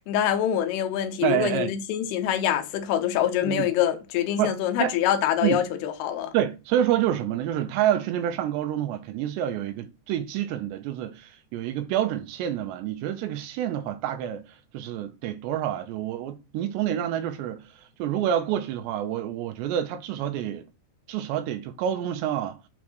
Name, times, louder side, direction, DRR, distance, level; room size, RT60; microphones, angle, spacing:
voice 1, 0.1-6.3, left 10 dB, 75° left, 2.5 m, -25 dB
voice 2, 1.2-1.7 3.4-3.7 4.4-4.9 5.4-5.6 6.3-14.4 14.7-20.6 21.1-22.6, right 11 dB, 85° right, 2.6 m, -28 dB
7.0 x 3.2 x 6.1 m
omnidirectional pair, 5.4 m